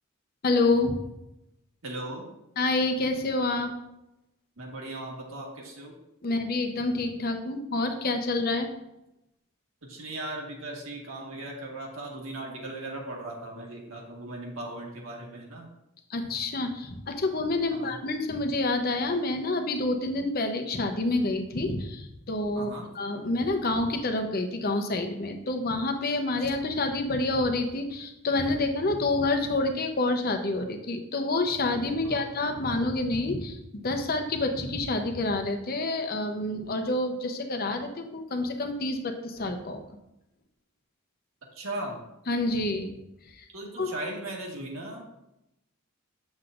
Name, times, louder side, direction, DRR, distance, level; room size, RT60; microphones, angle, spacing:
voice 1, 0.4-1.0 2.6-3.7 6.2-8.7 16.1-39.8 42.3-42.9 43.2-43.5 43.8-43.9, left 2 dB, 45° left, 5 dB, 0.8 m, -28 dB
voice 2, 1.8-2.3 4.6-5.9 9.8-15.7 17.7-17.9 22.5-22.9 32.0-32.2 41.5-42.0 43.5-45.0, right 1 dB, 75° right, -1 dB, 1.7 m, -38 dB
7.8 x 7.2 x 2.5 m, 0.87 s
head